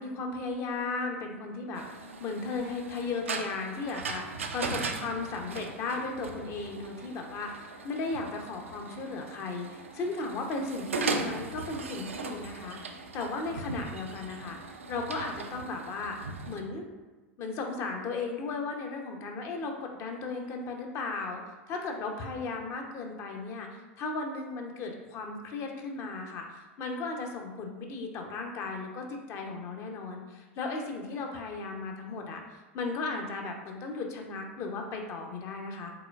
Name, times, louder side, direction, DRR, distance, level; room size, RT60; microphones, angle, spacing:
voice 1, 0.0-14.6 14.9-16.2 16.5-16.9 17.4-21.4 21.7-35.9, left 3 dB, 40° left, 2 dB, 0.7 m, -36 dB
sound 1, 1.7-16.6, right 4 dB, 75° right, 0.4 m, -39 dB
4.8 x 3.8 x 2.4 m, 1.2 s
figure-of-eight pair, 85°, 7 cm